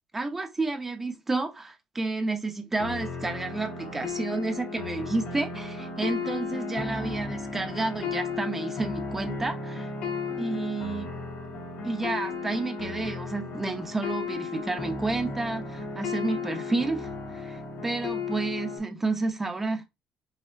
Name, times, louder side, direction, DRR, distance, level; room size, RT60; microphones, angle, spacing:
voice 1, 0.1-9.9 10.4-11.1 11.8-19.8, right 3 dB, 15° right, 0.8 m, -30 dB
sound 1, 2.8-18.8, left 4 dB, 80° left, 2.0 m, -34 dB
5.7 x 2.1 x 4.3 m
cardioid pair, 150°, 2 cm